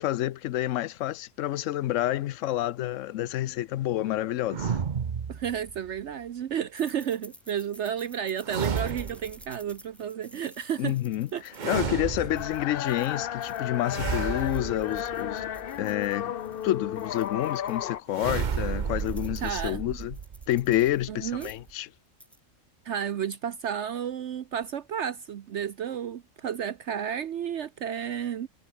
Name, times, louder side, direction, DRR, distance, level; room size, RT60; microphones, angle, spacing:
voice 1, 0.0-4.8 10.8-15.5 15.8-16.3 16.6-20.2 20.5-21.9, left 14 dB, 80° left, 0.9 m, -29 dB
sound 1, 4.5-6.0 8.4-9.5 11.5-12.7 13.9-15.7 18.1-21.7, right 6 dB, 40° right, 0.9 m, -32 dB
voice 2, 5.3-11.0 11.3-11.8 19.4-19.8 21.1-21.5 22.8-28.5, right 8 dB, 65° right, 1.0 m, -32 dB
sound 2, 6.8-13.9 14.2-17.8 18.3-18.4 18.6-21.1 21.3-21.7 22.1-22.4, equal, ahead, 4.5 m, -53 dB
sound 3, 12.3-18.0, left 10 dB, 55° left, 0.7 m, -33 dB
omnidirectional pair, 1.3 m